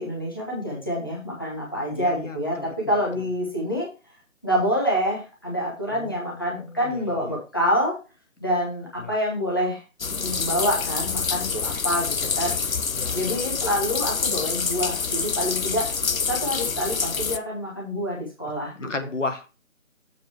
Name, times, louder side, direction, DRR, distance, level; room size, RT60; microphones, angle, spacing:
voice 1, 0.0-3.9 4.4-8.0 8.4-9.8 10.2-12.5 13.1-15.9 16.3-18.9, equal, 15° left, -3 dB, 1.1 m, -27 dB
voice 2, 1.9-2.7 5.9-7.0 9.0-9.1 12.9-13.4 18.8-19.5, left 3 dB, 65° left, 8 dB, 1.2 m, -34 dB
sound 1, 10.0-17.4, left 5 dB, 80° left, 0.8 m, -27 dB
7.4 x 4.9 x 4.6 m, 0.32 s
figure-of-eight pair, 175°, 41 cm